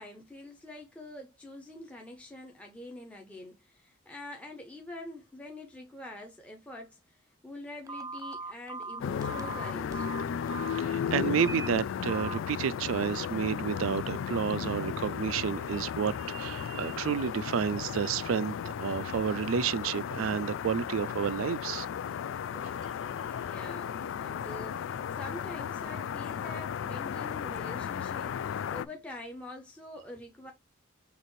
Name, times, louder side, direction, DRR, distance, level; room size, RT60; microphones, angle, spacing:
voice 1, 0.0-10.1 11.4-11.5 22.5-22.8 23.5-30.5, left 1 dB, 5° left, 0.8 m, -45 dB
Telephone, 7.9-10.8 11.4-11.7 12.1-12.4, right 3 dB, 15° right, 0.3 m, -39 dB
sound 1, 9.0-28.9, left 8 dB, 70° left, 0.3 m, -35 dB
voice 2, 10.8-21.9, right 7 dB, 85° right, 0.4 m, -30 dB
6.7 x 2.6 x 3.1 m
head